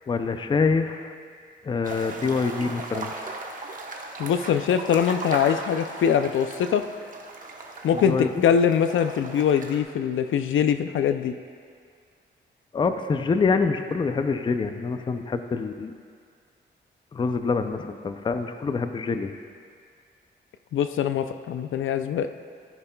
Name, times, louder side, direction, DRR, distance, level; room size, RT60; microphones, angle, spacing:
voice 1, 0.1-1.1 1.6-3.1 7.9-8.3 12.7-15.9 17.1-19.4, left 4 dB, 25° left, 8 dB, 0.4 m, -25 dB
sound 1, 1.8-9.8, right 3 dB, 45° right, 1.0 m, -37 dB
voice 2, 4.2-6.8 7.8-11.3 20.7-22.3, left 8 dB, 85° left, 9 dB, 0.5 m, -23 dB
15.0 x 9.9 x 2.3 m, 2.1 s
wide cardioid pair, 165°, 20 cm